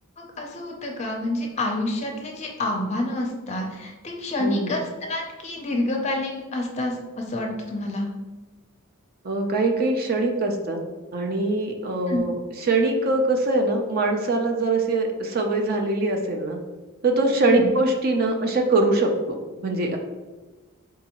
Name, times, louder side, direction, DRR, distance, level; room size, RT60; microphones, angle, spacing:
voice 1, 0.2-8.1 12.1-12.2 17.4-17.7, left 2 dB, 30° left, 2 dB, 0.5 m, -28 dB
voice 2, 4.4-4.7 9.2-10.8 11.1-12.3 12.7-16.6 17.0-20.0, right 2 dB, 40° right, 2 dB, 0.4 m, -23 dB
4.6 x 2.6 x 2.9 m, 1.2 s
head